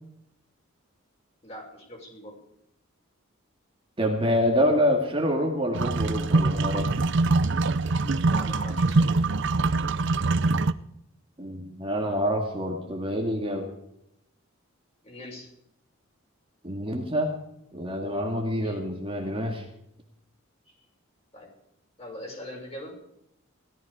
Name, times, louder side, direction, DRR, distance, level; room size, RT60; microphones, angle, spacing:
voice 1, 1.4-2.4 8.3-9.1 15.0-15.5 18.6-18.8 20.7-20.8 21.3-21.5 22.0-22.9, left 1 dB, 30° left, 0 dB, 5.9 m, -42 dB
voice 2, 4.0-7.0 11.4-13.7 16.6-17.3 17.7-19.7, equal, 25° right, 1 dB, 2.2 m, -26 dB
sound 1, 5.7-10.7, right 3 dB, 60° right, 0.6 m, -24 dB
17.5 x 13.5 x 5.0 m, 0.79 s
head